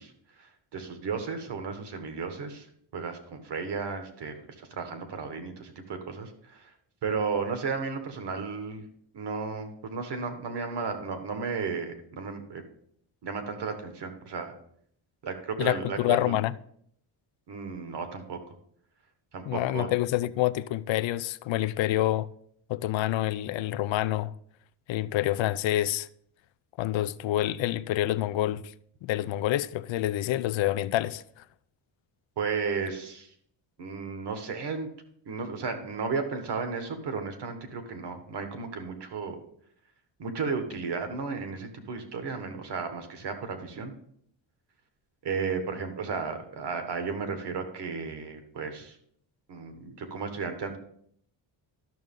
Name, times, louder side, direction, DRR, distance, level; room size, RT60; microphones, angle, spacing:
voice 1, 0.0-2.7 2.9-6.7 7.0-8.9 9.1-12.6 13.2-14.5 15.2-16.4 17.5-18.5 19.3-19.9 32.4-33.3 33.8-34.9 35.2-39.4 40.2-43.9 45.2-49.0 49.5-50.8, right 5 dB, 55° right, 1.6 m, -34 dB
voice 2, 15.6-16.5 19.5-22.3 22.7-24.3 24.9-26.1 26.8-28.7 29.0-31.4, left 14 dB, 70° left, 0.5 m, -27 dB
12.5 x 6.4 x 3.7 m
cardioid pair, 145°, 48 cm